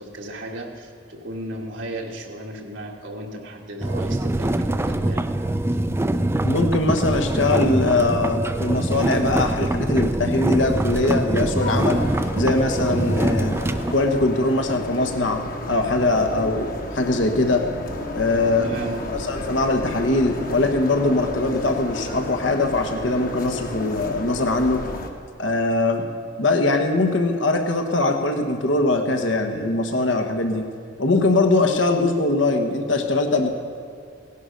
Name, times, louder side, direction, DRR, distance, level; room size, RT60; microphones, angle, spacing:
voice 1, 0.0-5.2 18.6-19.1, right 1 dB, 80° right, 0 dB, 1.7 m, -35 dB
sound 1, 3.8-13.9, right 1 dB, 15° right, 0.4 m, -23 dB
voice 2, 6.4-12.1 12.3-13.6 13.9-17.7 18.1-18.8 19.1-24.8 25.4-26.1 26.4-30.7 31.0-33.5, left 2 dB, 80° left, 5 dB, 1.3 m, -21 dB
sound 2, 11.6-25.1, left 1 dB, 50° left, 1.2 m, -32 dB
17.5 x 11.0 x 5.3 m, 2.5 s
head